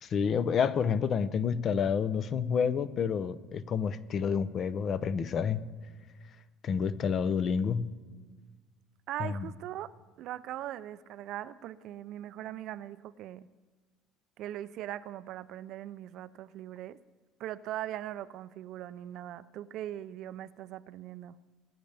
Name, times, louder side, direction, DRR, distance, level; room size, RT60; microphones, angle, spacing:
voice 1, 0.0-5.6 6.6-7.9 9.2-9.5, left 6 dB, 40° left, 14 dB, 0.6 m, -29 dB
voice 2, 9.1-9.9 10.2-13.5 14.4-17.0 17.4-21.3, right 12 dB, 60° right, 15 dB, 0.4 m, -40 dB
21.5 x 8.8 x 3.4 m, 1.4 s
cardioid pair, 120°, 0 cm